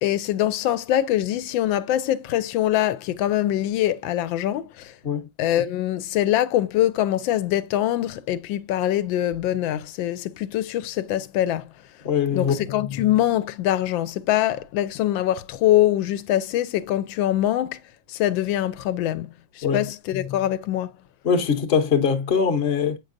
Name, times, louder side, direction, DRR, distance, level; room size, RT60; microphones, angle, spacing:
voice 1, 0.0-4.9 5.4-11.7 12.3-17.8 18.1-20.9, left 13 dB, 85° left, 1.3 m, -23 dB
voice 2, 12.0-12.6 19.6-19.8 21.2-23.0, left 6 dB, 40° left, 0.9 m, -22 dB
7.6 x 5.3 x 2.5 m
omnidirectional pair, 2.1 m